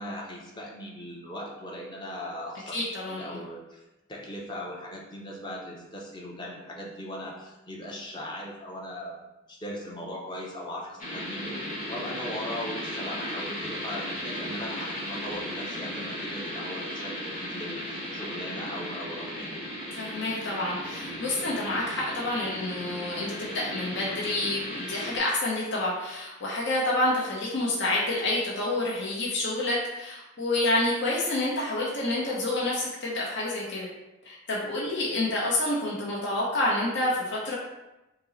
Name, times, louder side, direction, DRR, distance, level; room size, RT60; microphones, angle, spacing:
voice 1, 0.0-3.8 4.1-9.2 9.5-11.6 11.9-19.5, equal, 20° left, -2 dB, 0.7 m, -39 dB
voice 2, 2.7-3.4 19.9-33.9 34.2-37.6, left 2 dB, 60° left, -5 dB, 0.8 m, -28 dB
sound 1, 11.0-25.2, equal, 40° left, 1.3 m, -36 dB
5.2 x 2.0 x 3.9 m, 0.99 s
head